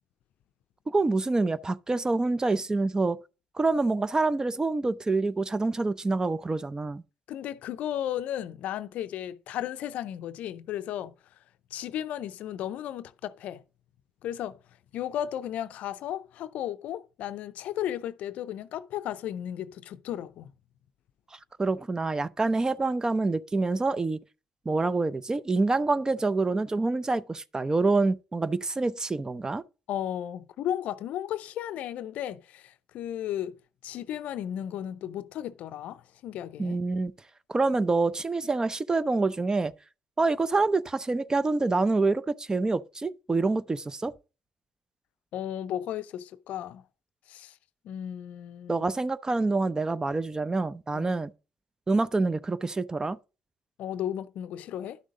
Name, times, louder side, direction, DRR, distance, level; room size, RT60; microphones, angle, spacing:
voice 1, 0.9-3.2 3.6-7.0 21.6-24.2 24.7-29.6 36.6-37.1 37.5-39.7 40.2-44.1 48.7-51.3 51.9-53.2, right 3 dB, 25° right, 0.6 m, -26 dB
voice 2, 7.3-11.1 11.7-13.6 14.2-14.6 14.9-20.5 29.9-33.6 33.8-36.8 45.3-46.8 47.3-47.6 47.8-48.9 50.9-51.2 53.8-55.0, left 11 dB, 65° left, 0.5 m, -34 dB
11.5 x 6.3 x 3.7 m
hypercardioid pair, 45°, 3 cm